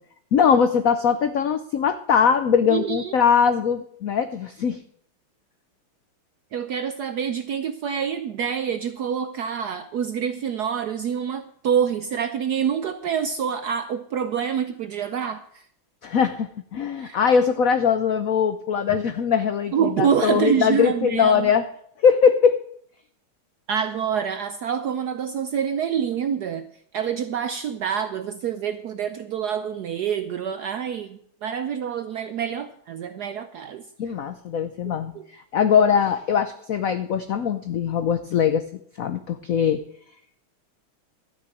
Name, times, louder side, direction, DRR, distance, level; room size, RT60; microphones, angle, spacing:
voice 1, 0.3-4.8 16.0-21.6 22.0-22.6 34.0-38.7 39.0-39.8, left 7 dB, 85° left, 0.7 m, -21 dB
voice 2, 2.7-3.1 6.5-15.6 17.0-17.2 19.7-21.5 23.7-26.7 26.9-33.8 34.9-35.2, right 8 dB, 70° right, 0.9 m, -26 dB
13.0 x 6.5 x 8.3 m
omnidirectional pair, 2.4 m